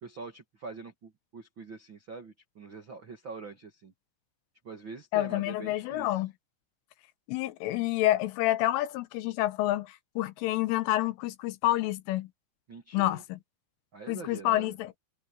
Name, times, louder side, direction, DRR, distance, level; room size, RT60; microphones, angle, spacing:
voice 1, 0.0-3.9 4.6-6.2 12.7-13.2 13.9-14.7, right 4 dB, 50° right, 1.4 m, -44 dB
voice 2, 5.1-6.3 7.3-12.3 12.9-13.4 14.1-14.9, left 15 dB, 90° left, 3.5 m, -28 dB
omnidirectional pair, 5.6 m